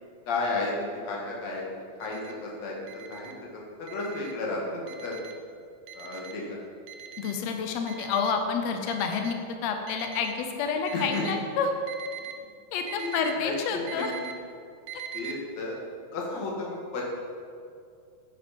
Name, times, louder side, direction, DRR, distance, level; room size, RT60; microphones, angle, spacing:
voice 1, 0.3-1.6 2.0-5.2 5.9-6.6 10.9-11.4 13.0-14.3 15.1-15.8 16.1-17.0, left 2 dB, 55° left, -3 dB, 2.7 m, -33 dB
Alarm, 2.0-2.3 2.9-3.3 3.9-4.3 4.9-5.3 5.9-6.3 6.9-7.3 7.9-8.3 8.9-9.3 9.9-10.3 10.9-11.3 11.9-12.3 12.9-13.3 13.9-14.3 14.9-15.3, right 10 dB, 75° right, 2.1 m, -41 dB
voice 2, 7.2-9.4 9.6-11.7 12.7-14.1, left 6 dB, 85° left, 5 dB, 1.5 m, -29 dB
9.3 x 8.3 x 5.3 m, 2.4 s
omnidirectional pair, 4.1 m